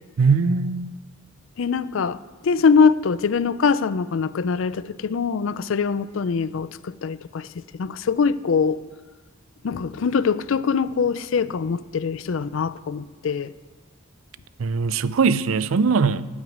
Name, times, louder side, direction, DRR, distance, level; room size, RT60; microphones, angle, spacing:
voice 1, 0.2-0.9 14.6-16.3, right 5 dB, 80° right, 16 dB, 0.5 m, -20 dB
voice 2, 1.6-2.2 2.4-8.8 9.6-13.5, left 5 dB, 65° left, 16 dB, 0.4 m, -23 dB
12.5 x 6.2 x 9.1 m, 1.3 s
head